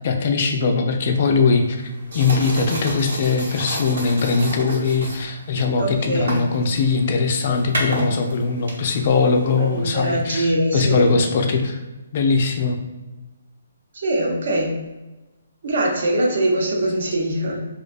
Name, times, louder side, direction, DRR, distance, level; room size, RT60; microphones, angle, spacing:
voice 1, 0.0-1.8 2.1-11.8 12.1-12.8, left 4 dB, 45° left, 4 dB, 0.3 m, -20 dB
sound 1, 1.1-10.3, right 1 dB, 85° right, 0.9 m, -32 dB
voice 2, 5.8-6.5 9.6-11.1 13.9-14.8 15.6-17.7, right 1 dB, 65° right, -1 dB, 0.6 m, -22 dB
2.4 x 2.2 x 2.4 m, 1.1 s
hypercardioid pair, 155°, 0 cm